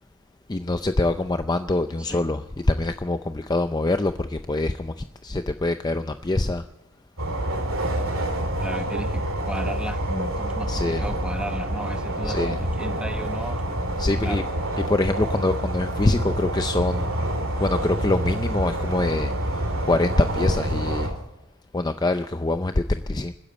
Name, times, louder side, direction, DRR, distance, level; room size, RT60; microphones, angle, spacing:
voice 1, 0.5-2.4 2.7-4.9 5.2-6.6 10.7-11.0 12.2-12.6 14.0-14.4 14.9-17.1 17.6-21.2 21.7-23.3, left 2 dB, 20° left, 8 dB, 0.5 m, -24 dB
voice 2, 2.0-2.3 8.6-13.6 14.2-14.5, equal, 5° right, 7 dB, 1.1 m, -35 dB
sound 1, 7.2-21.1, right 1 dB, 65° right, 3.0 m, -27 dB
26.5 x 10.5 x 4.2 m, 0.96 s
head